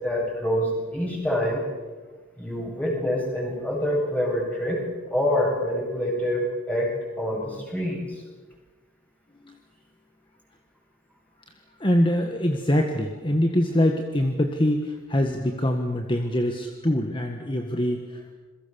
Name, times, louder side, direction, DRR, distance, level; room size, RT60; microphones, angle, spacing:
voice 1, 0.0-1.7 2.4-4.8 5.1-8.2, equal, 5° left, -2 dB, 7.6 m, -26 dB
voice 2, 11.8-18.3, left 1 dB, 25° left, 4 dB, 1.6 m, -24 dB
28.0 x 22.0 x 7.1 m, 1.3 s
head